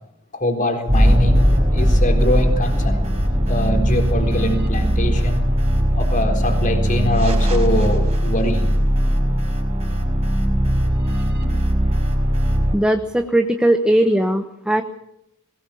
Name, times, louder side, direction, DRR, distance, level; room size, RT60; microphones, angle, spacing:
voice 1, 0.3-3.1 3.5-5.5 6.0-8.7 11.3-11.5, left 1 dB, 40° left, 3 dB, 4.2 m, -23 dB
sound 1, 0.9-12.8, equal, 30° right, 4.9 m, -18 dB
voice 2, 12.7-14.8, right 1 dB, 5° right, 6 dB, 1.0 m, -18 dB
21.5 x 19.5 x 7.1 m, 0.80 s
head